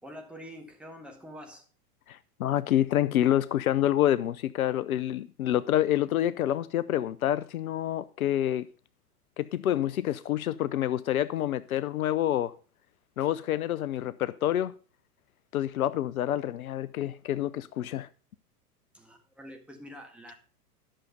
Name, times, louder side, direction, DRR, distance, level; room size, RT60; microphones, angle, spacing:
voice 1, 0.0-1.7 18.9-20.3, equal, ahead, 1.7 m, -46 dB
voice 2, 2.1-8.7 9.4-12.5 13.2-14.7 15.5-18.1, left 12 dB, 65° left, 0.7 m, -27 dB
11.5 x 6.4 x 5.2 m
figure-of-eight pair, 100°, 46 cm